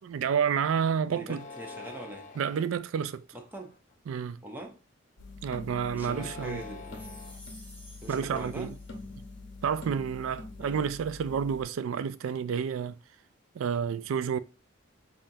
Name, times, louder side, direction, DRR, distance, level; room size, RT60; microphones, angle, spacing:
voice 1, 0.0-1.4 2.4-3.3 4.1-4.4 5.4-6.6 8.1-8.7 9.6-13.0 13.5-14.4, right 7 dB, 85° right, 0.3 m, -30 dB
voice 2, 1.1-2.3 3.3-3.8 4.4-4.8 5.9-7.1 8.0-8.8 10.6-10.9, right 1 dB, 10° right, 0.6 m, -42 dB
sound 1, 1.2-2.7 3.4-3.9 5.9-7.4, left 3 dB, 35° left, 0.5 m, -46 dB
sound 2, 5.2-11.6, left 3 dB, 60° left, 0.8 m, -45 dB
sound 3, 6.8-9.3, equal, 5° left, 1.3 m, -53 dB
5.5 x 2.5 x 2.7 m
head